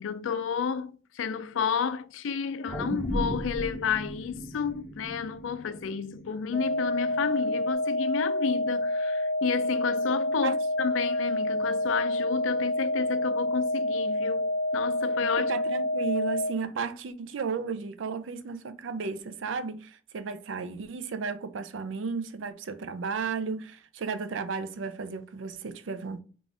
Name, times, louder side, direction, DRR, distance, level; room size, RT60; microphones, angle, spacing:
voice 1, 0.0-15.5, left 6 dB, 90° left, 0.4 m, -31 dB
sound 1, 2.7-7.2 7.6-7.7, equal, 5° right, 0.7 m, -36 dB
sound 2, 6.5-16.5, left 1 dB, 35° left, 0.5 m, -28 dB
voice 2, 15.2-26.2, right 5 dB, 80° right, 0.5 m, -34 dB
3.8 x 2.5 x 3.4 m
head